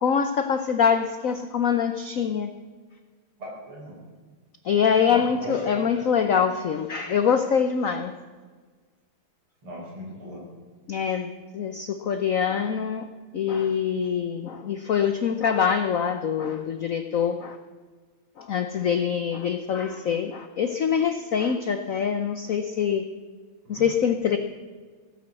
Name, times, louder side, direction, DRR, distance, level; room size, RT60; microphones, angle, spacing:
voice 1, 0.0-2.5 4.6-8.1 10.9-17.6 18.4-23.1 23.7-24.4, left 7 dB, 70° left, 9 dB, 0.7 m, -24 dB
voice 2, 3.4-4.0 5.1-5.6 9.6-10.4 23.6-23.9, equal, 75° right, -3 dB, 6.5 m, -38 dB
17.0 x 10.5 x 7.7 m, 1.5 s
omnidirectional pair, 2.4 m